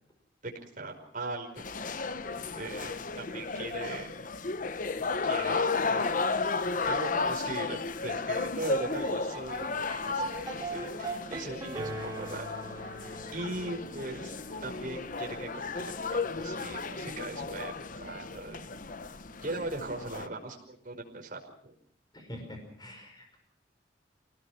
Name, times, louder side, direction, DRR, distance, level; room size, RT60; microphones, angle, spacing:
voice 1, 0.4-1.6 2.5-4.1 5.2-6.4 6.8-12.5 12.8-14.3 14.6-18.6 19.4-21.7, right 2 dB, 50° right, 2 dB, 5.4 m, -39 dB
sound 1, 1.6-20.3, left 4 dB, 45° left, 0.9 m, -34 dB
sound 2, 8.6-16.8, right 2 dB, 20° right, 4.4 m, -41 dB
voice 2, 22.1-23.4, left 1 dB, 25° left, 3 dB, 5.3 m, -45 dB
27.5 x 19.0 x 6.0 m, 0.64 s
head